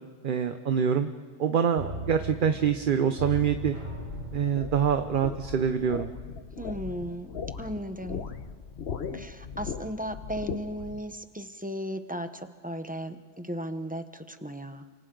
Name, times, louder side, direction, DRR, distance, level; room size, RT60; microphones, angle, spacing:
voice 1, 0.2-1.1 1.4-3.8 4.3-6.1, right 7 dB, 50° right, 8 dB, 0.9 m, -25 dB
sound 1, 1.8-6.5 6.8-6.9, right 1 dB, 80° right, 5.0 m, -40 dB
sound 2, 3.3-11.0, left 6 dB, 65° left, 1.2 m, -39 dB
voice 2, 6.6-7.3 7.6-8.2 9.1-15.0, equal, 10° right, 8 dB, 0.9 m, -36 dB
29.0 x 27.0 x 3.9 m, 1.5 s
omnidirectional pair, 1.2 m